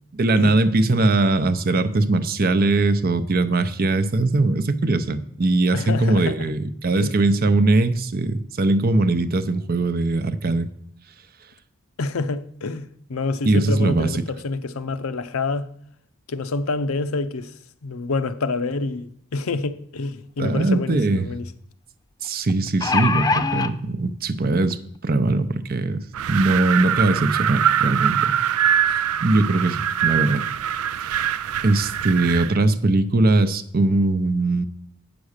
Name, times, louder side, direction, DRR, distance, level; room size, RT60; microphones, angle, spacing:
voice 1, 0.1-10.7 13.5-14.1 20.4-21.3 22.2-26.0 26.3-28.3 28.9-30.4 31.0-31.4 31.6-34.7, right 2 dB, 45° right, 0.6 m, -21 dB
voice 2, 5.7-6.5 7.0-7.1 12.0-15.7 16.3-17.5 17.8-21.5, left 3 dB, 80° left, 0.6 m, -27 dB
sound 1, 20.4-20.5 20.8-20.9 22.5-23.7 24.6-24.7 25.1-25.2, left 4 dB, 15° left, 0.4 m, -22 dB
Wind, 26.1-32.6, right 10 dB, 90° right, 0.4 m, -23 dB
8.4 x 6.1 x 6.5 m
head